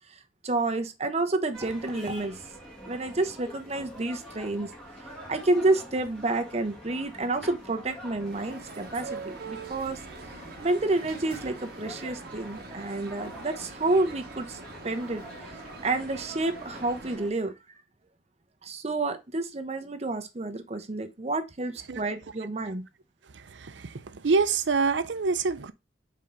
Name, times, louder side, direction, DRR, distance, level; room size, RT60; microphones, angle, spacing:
voice 1, 0.1-2.4 2.9-4.7 5.3-10.0 10.6-15.2 15.8-17.5 18.6-22.9, right 2 dB, 35° right, 0.9 m, -29 dB
sound 1, 1.5-17.3, equal, 5° left, 1.8 m, -45 dB
sound 2, 8.3-17.2, right 4 dB, 60° right, 1.3 m, -44 dB
voice 2, 23.5-25.7, right 4 dB, 85° right, 0.6 m, -26 dB
5.2 x 3.9 x 5.2 m
head